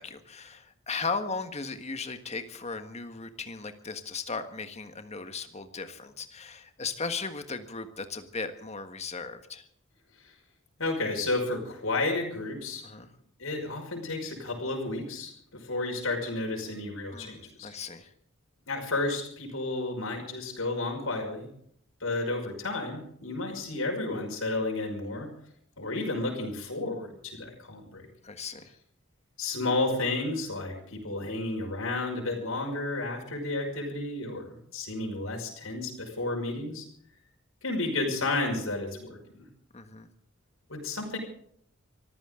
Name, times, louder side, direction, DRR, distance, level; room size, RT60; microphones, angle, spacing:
voice 1, 0.0-9.7 12.8-13.1 17.1-18.1 28.2-28.7 39.7-40.1, left 4 dB, 30° left, 8 dB, 1.5 m, -37 dB
voice 2, 10.8-12.8 13.4-17.7 18.7-21.5 22.0-25.3 25.8-28.0 29.4-36.9 37.6-39.5 40.7-41.2, left 2 dB, 85° left, 1 dB, 5.7 m, -32 dB
25.0 x 14.5 x 3.8 m, 0.66 s
head